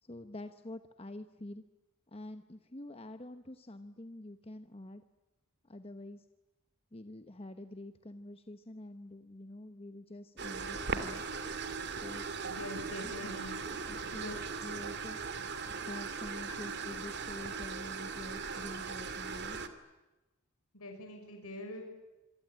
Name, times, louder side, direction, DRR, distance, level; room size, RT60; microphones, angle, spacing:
voice 1, 0.0-1.6 2.1-5.0 5.6-6.3 6.9-11.2 12.0-12.4 13.0-13.2 13.7-15.2 15.8-19.6, left 1 dB, 25° left, 9 dB, 1.1 m, -47 dB
sound 1, 10.4-19.7, right 5 dB, 50° right, 2.6 m, -39 dB
voice 2, 12.4-13.6 14.2-14.3 15.4-15.5 16.4-16.6 20.7-21.8, left 1 dB, 85° left, 4 dB, 6.0 m, -44 dB
27.0 x 23.5 x 8.9 m, 1.1 s
head